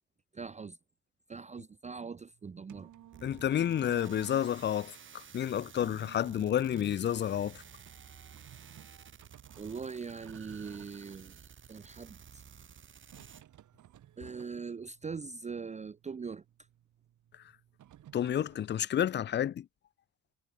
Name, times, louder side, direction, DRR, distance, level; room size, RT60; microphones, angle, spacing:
voice 1, 0.3-0.8 1.3-2.9 9.6-11.4 11.7-12.4 14.2-16.4, right 5 dB, 20° right, 0.7 m, -41 dB
sound 1, 2.3-18.7, right 11 dB, 65° right, 5.9 m, -57 dB
sound 2, 3.1-13.4, right 7 dB, 35° right, 1.6 m, -53 dB
voice 2, 3.2-7.6 18.1-19.6, left 10 dB, 35° left, 0.5 m, -30 dB
cardioid pair, 105°, 33 cm